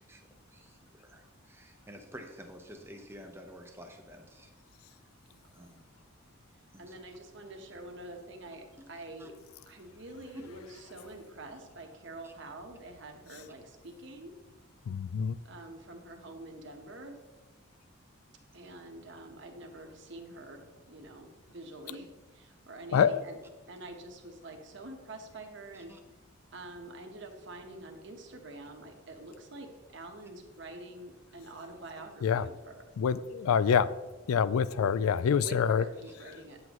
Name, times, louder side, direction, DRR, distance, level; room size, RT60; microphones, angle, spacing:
voice 1, 0.0-4.5 5.5-5.8 6.7-7.0 9.2-9.3 12.2-12.3 15.4-15.5 22.9-23.1 25.7-26.0, equal, 10° right, 4 dB, 0.7 m, -50 dB
voice 2, 5.3-5.8 6.8-9.3 9.7-14.3 15.4-17.2 18.5-23.4 23.7-25.9 26.5-32.9 35.3-36.6, right 2 dB, 55° right, 3 dB, 1.1 m, -46 dB
voice 3, 14.9-15.4 22.9-23.2 32.2-32.5 33.0-33.9 34.3-35.9, left 7 dB, 85° left, 17 dB, 0.3 m, -26 dB
9.3 x 8.0 x 3.0 m, 1.2 s
head